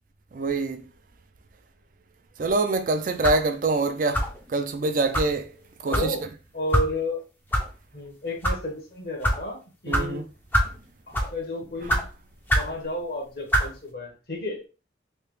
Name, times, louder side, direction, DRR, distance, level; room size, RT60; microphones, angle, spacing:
voice 1, 0.3-0.8 2.4-5.5 5.8-6.2 9.9-10.2, right 3 dB, 45° right, 0.4 m, -25 dB
sound 1, 3.2-3.5 4.1-4.4 5.1-5.3 5.9-6.1 6.7-6.9 7.5-7.6 8.3-8.6 9.2-9.4 9.9-10.1 10.5-10.8 11.1-11.4 11.9-12.0 12.5-12.7 13.5-13.7, equal, 10° left, 0.5 m, -23 dB
voice 2, 5.8-6.2 6.5-7.2 7.9-10.2 11.1-12.1 12.5-14.6, left 1 dB, 55° left, 1.0 m, -32 dB
3.3 x 2.8 x 3.1 m
head